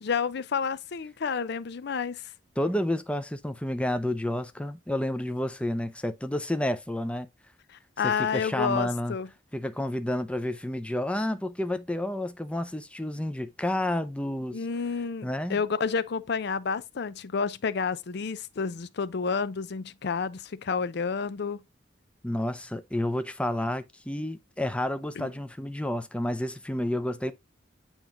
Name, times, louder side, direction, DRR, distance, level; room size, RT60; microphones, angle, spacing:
voice 1, 0.0-2.3 7.7-9.3 14.5-21.6 25.2-25.3, left 5 dB, 60° left, 0.5 m, -30 dB
voice 2, 2.6-7.3 8.0-9.2 9.5-14.6 15.2-15.6 22.2-27.3, left 1 dB, 5° left, 0.6 m, -30 dB
8.9 x 3.0 x 3.7 m
head